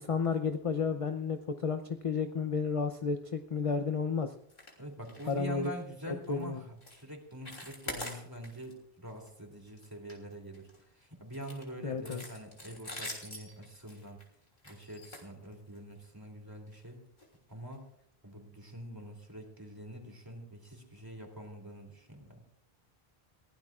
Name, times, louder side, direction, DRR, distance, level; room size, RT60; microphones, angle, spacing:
voice 1, 0.0-4.3 5.3-5.7 6.3-6.6 11.8-12.2, left 5 dB, 40° left, 7 dB, 0.6 m, -32 dB
sound 1, 4.5-4.8 5.0-5.4 5.6-5.8 6.2-6.4 6.8-7.0 7.3-8.7 9.1-9.3 9.7-10.8 11.3-15.9 16.7-16.8 17.2-17.3 17.7-17.8, left 1 dB, 60° left, 3.5 m, -45 dB
voice 2, 4.8-14.2 14.6-17.0 17.5-17.8 18.2-22.4, equal, 20° right, 2 dB, 3.0 m, -45 dB
22.0 x 16.5 x 2.4 m, 0.72 s
omnidirectional pair, 1.0 m